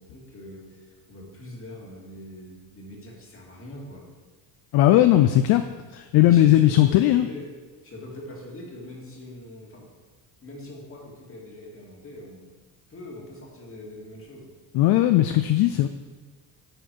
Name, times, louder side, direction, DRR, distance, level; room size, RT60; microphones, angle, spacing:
voice 1, 0.0-4.1 6.2-7.5 7.8-9.9 10.4-12.4 12.9-14.5, left 1 dB, 30° left, -2 dB, 2.3 m, -42 dB
voice 2, 4.7-5.7 5.9-7.3 14.7-15.9, left 13 dB, 60° left, 9 dB, 0.5 m, -18 dB
9.8 x 4.6 x 4.6 m, 1.4 s
cardioid pair, 100°, 44 cm